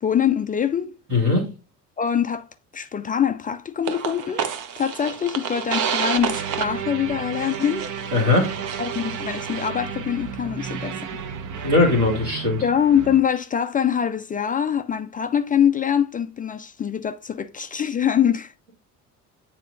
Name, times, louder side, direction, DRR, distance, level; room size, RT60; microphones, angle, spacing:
voice 1, 0.0-0.9 2.0-2.5 2.7-4.5 4.8-7.9 8.8-11.0 12.6-18.5, left 8 dB, 20° left, 0.4 m, -23 dB
voice 2, 1.1-1.5 8.1-8.5 11.6-12.6, left 2 dB, 85° right, 2.2 m, -19 dB
sound 1, 3.9-13.2, right 7 dB, 40° right, 0.9 m, -30 dB
9.1 x 4.4 x 2.5 m
figure-of-eight pair, 50°, 46 cm